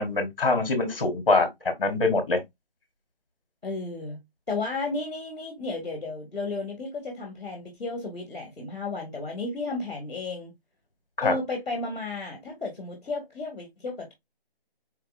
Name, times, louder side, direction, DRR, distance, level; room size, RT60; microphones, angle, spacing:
voice 1, 0.0-1.5 1.8-2.4 11.2-11.3, left 3 dB, 35° left, 0.9 m, -23 dB
voice 2, 3.6-4.2 4.5-10.5 11.2-14.1, left 3 dB, 5° right, 0.8 m, -33 dB
4.4 x 2.9 x 2.4 m
figure-of-eight pair, 165°, 31 cm